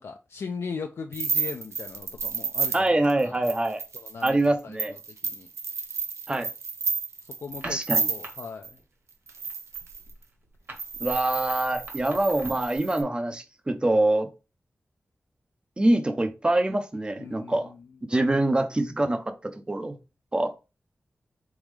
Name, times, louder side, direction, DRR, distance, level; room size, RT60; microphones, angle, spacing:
voice 1, 0.0-3.5 3.9-5.5 7.4-7.8 8.1-8.7 17.2-17.8, left 5 dB, 70° left, 0.4 m, -38 dB
sound 1, 1.1-8.7 9.3-10.1 10.8-13.0, right 5 dB, 90° right, 0.6 m, -31 dB
voice 2, 2.7-3.8 4.2-4.9 6.3-6.5 7.6-8.1 11.0-14.3 15.8-17.7 18.1-20.0 20.3-20.5, right 1 dB, 20° right, 0.6 m, -25 dB
sound 2, 7.5-8.3 8.6-8.9 9.2-12.8, right 2 dB, 45° right, 1.5 m, -43 dB
4.0 x 3.6 x 3.2 m
wide cardioid pair, 120°, 5 cm